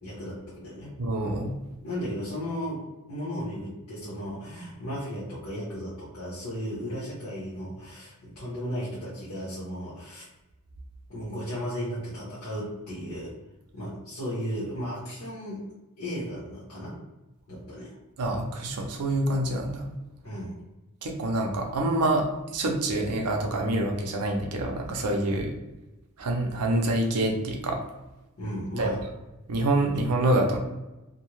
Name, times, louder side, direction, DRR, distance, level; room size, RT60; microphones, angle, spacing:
voice 1, 0.0-0.9 1.8-2.8 3.1-10.2 11.1-13.3 13.7-15.7 16.0-17.0 17.5-17.9 20.2-20.5 25.2-25.4 28.4-29.0, equal, 90° left, -10 dB, 1.0 m, -35 dB
voice 2, 1.0-1.5 18.2-19.8 21.0-22.2 22.5-25.5 26.2-27.8 28.8-28.9 29.5-30.6, right 1 dB, 85° right, 1 dB, 0.5 m, -26 dB
2.6 x 2.1 x 3.0 m, 1.0 s
head